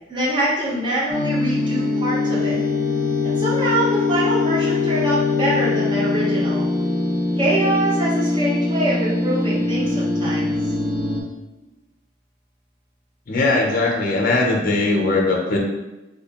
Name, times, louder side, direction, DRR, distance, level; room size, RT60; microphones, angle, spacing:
voice 1, 0.1-2.6 3.2-6.6 7.4-10.5, right 1 dB, 25° right, -7 dB, 1.0 m, -24 dB
sound 1, 1.1-11.2, left 3 dB, 5° left, 1.0 m, -22 dB
voice 2, 13.3-15.6, left 2 dB, 45° left, 1 dB, 0.5 m, -19 dB
2.6 x 2.6 x 4.2 m, 1.0 s
head